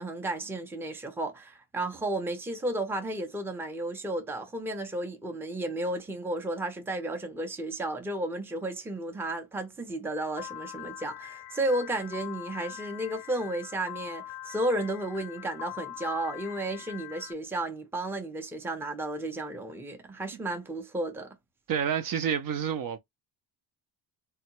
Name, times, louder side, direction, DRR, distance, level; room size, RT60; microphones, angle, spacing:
voice 1, 0.0-21.4, right 1 dB, 5° right, 0.5 m, -33 dB
Piano, 10.4-17.3, left 14 dB, 90° left, 0.6 m, -43 dB
voice 2, 21.7-23.0, right 8 dB, 50° right, 0.6 m, -29 dB
3.5 x 2.2 x 2.9 m
cardioid pair, 105°, 45 cm